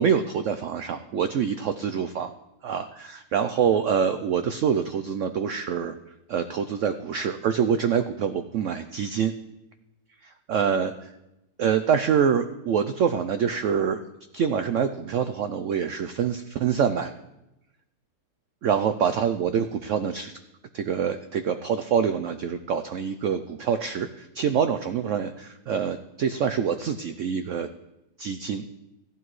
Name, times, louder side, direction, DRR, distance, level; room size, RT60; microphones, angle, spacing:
voice 1, 0.0-2.3 2.6-5.9 6.3-9.3 10.2-11.1 11.6-14.0 14.3-17.1 18.6-20.3 20.7-27.7 28.2-28.6, right 7 dB, 85° right, 9 dB, 0.6 m, -25 dB
15.0 x 10.5 x 3.1 m, 0.93 s
omnidirectional pair, 1.9 m